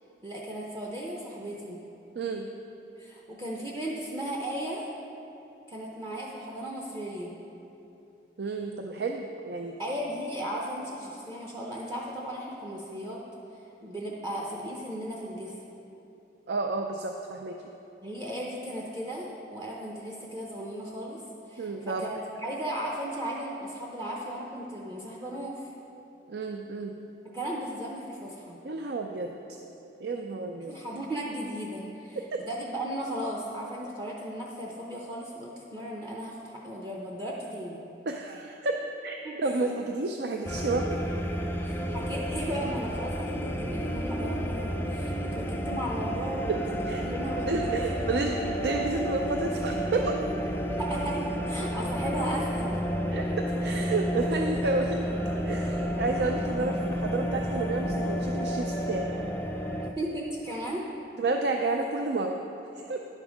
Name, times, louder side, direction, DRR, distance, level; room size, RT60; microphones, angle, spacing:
voice 1, 0.2-1.8 3.0-4.9 5.7-7.4 9.8-13.2 13.8-15.5 18.0-21.2 21.5-25.7 27.3-28.6 30.6-37.8 39.2-39.5 41.6-47.6 48.1-48.3 50.7-52.7 60.0-60.9, right 1 dB, 25° right, -3 dB, 0.7 m, -36 dB
voice 2, 2.2-2.5 8.4-9.8 16.5-17.6 21.6-22.1 26.3-27.0 28.6-29.3 30.0-30.7 32.3-32.4 38.1-41.0 46.5-46.6 46.9-47.0 47.5-50.2 53.1-55.1 55.4-59.1 61.2-62.4 62.9-63.0, right 3 dB, 70° right, 3 dB, 0.5 m, -31 dB
sound 1, 40.4-59.9, equal, 10° left, 0.4 m, -31 dB
10.5 x 5.3 x 6.2 m, 2.9 s
head